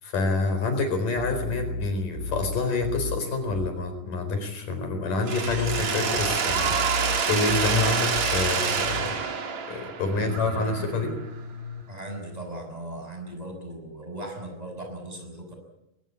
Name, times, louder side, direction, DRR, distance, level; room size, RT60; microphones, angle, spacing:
voice 1, 0.0-9.1 9.7-11.1, left 3 dB, 75° left, 7 dB, 5.9 m, -27 dB
sound 1, 1.2-3.7 5.5-9.1 10.2-11.8, left 2 dB, 25° right, 2.8 m, -34 dB
Mechanisms, 5.3-11.1, right 6 dB, 55° right, 3.7 m, -27 dB
voice 2, 10.1-11.2 11.9-15.5, right 1 dB, 10° right, 4 dB, 6.5 m, -38 dB
23.0 x 19.5 x 8.4 m, 0.87 s
omnidirectional pair, 3.8 m